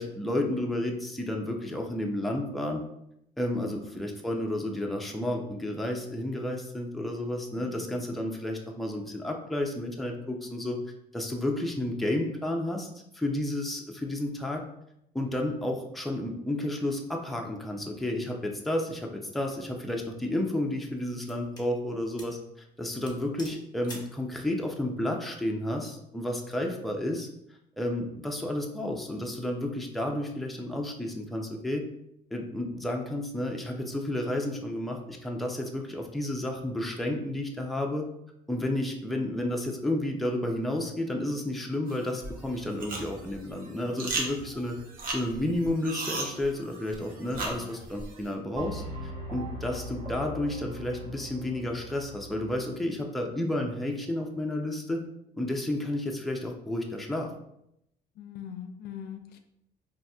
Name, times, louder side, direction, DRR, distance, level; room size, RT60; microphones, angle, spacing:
voice 1, 0.0-2.8 3.4-10.8 11.1-12.9 13.1-14.6 15.1-22.4 22.8-27.3 27.8-31.8 32.3-38.1 38.5-44.8 45.1-55.0 55.3-57.3, left 1 dB, ahead, 1 dB, 0.4 m, -31 dB
voice 2, 7.6-8.0 47.3-47.7 53.2-53.5 58.2-59.4, left 9 dB, 70° left, 7 dB, 0.4 m, -43 dB
sound 1, 19.8-19.9 20.5-21.7 22.2-22.4 22.7-22.8 23.1-24.2, left 2 dB, 25° left, 0.9 m, -47 dB
sound 2, 41.9-48.3, right 2 dB, 55° right, 0.8 m, -37 dB
sound 3, 48.6-52.8, equal, 30° right, 1.1 m, -40 dB
4.0 x 2.7 x 2.2 m, 0.79 s
cardioid pair, 110°, 17 cm